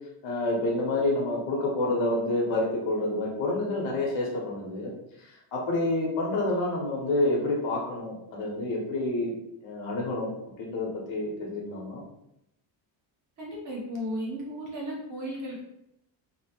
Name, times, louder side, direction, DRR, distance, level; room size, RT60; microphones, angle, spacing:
voice 1, 0.2-4.9 5.2-9.3 9.6-10.3 10.6-12.0, left 2 dB, 70° left, -2 dB, 1.0 m, -28 dB
voice 2, 13.4-15.6, equal, 40° right, -3 dB, 0.9 m, -35 dB
2.9 x 2.1 x 2.9 m, 0.81 s
cardioid pair, 165°, 46 cm